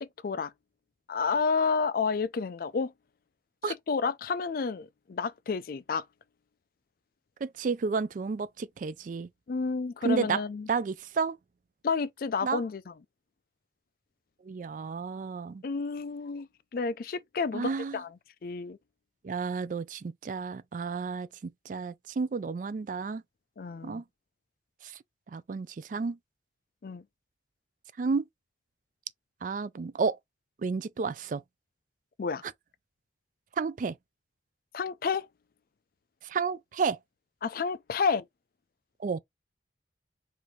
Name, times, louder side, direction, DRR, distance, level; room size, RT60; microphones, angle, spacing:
voice 1, 0.0-0.5 1.1-2.9 3.9-6.0 9.5-10.7 11.8-12.9 15.6-18.1 18.4-18.8 23.6-24.0 26.8-27.0 32.2-32.4 34.7-35.3 37.4-38.2, left 5 dB, 50° left, 0.4 m, -30 dB
voice 2, 7.4-9.3 10.0-10.4 10.7-11.4 12.4-12.6 14.4-15.6 17.5-18.0 19.2-23.2 23.8-24.0 24.8-25.0 25.3-26.2 28.0-28.2 29.4-30.2 30.6-31.4 33.6-34.0 36.2-37.0 39.0-39.2, right 5 dB, 45° right, 0.3 m, -31 dB
4.9 x 2.6 x 3.1 m
head